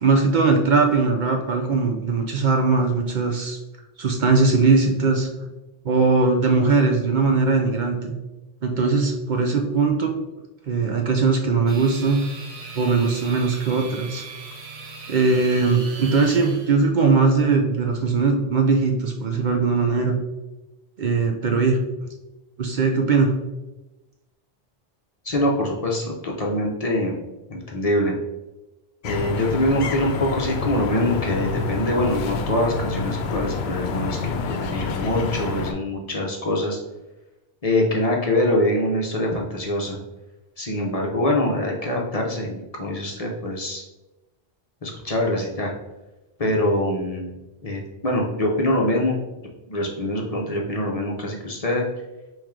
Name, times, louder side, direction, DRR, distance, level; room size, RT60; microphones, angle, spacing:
voice 1, 0.0-3.6 4.0-5.3 5.8-8.1 8.6-10.1 10.7-12.2 12.8-14.2 15.1-20.2 21.0-21.8 22.6-23.3, right 4 dB, 55° right, 3 dB, 0.6 m, -20 dB
sound 1, 11.7-16.7, right 3 dB, 80° right, 1.2 m, -38 dB
voice 2, 25.2-27.2 27.5-28.1 29.0-36.8 37.6-40.0 40.6-43.8 44.8-45.7 46.4-47.3 47.6-49.2 49.7-51.8, left 1 dB, 40° left, -1 dB, 0.7 m, -24 dB
sound 2, 29.0-35.7, left 4 dB, 80° left, 0.8 m, -27 dB
4.5 x 3.1 x 3.6 m, 1.0 s
omnidirectional pair, 1.1 m